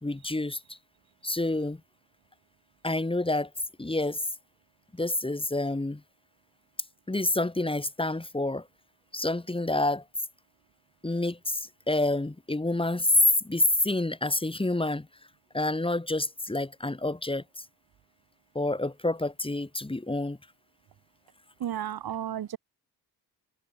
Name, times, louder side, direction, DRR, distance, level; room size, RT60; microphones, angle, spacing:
voice 1, 0.0-0.8 1.2-1.8 2.8-3.5 3.8-4.2 4.9-6.0 7.1-8.7 9.1-10.0 11.0-13.2 13.4-15.1 15.5-17.6 18.5-20.4, left 2 dB, 15° left, 2.6 m, -28 dB
voice 2, 21.6-22.6, right 10 dB, 70° right, 1.5 m, -33 dB
cardioid pair, 90°, 38 cm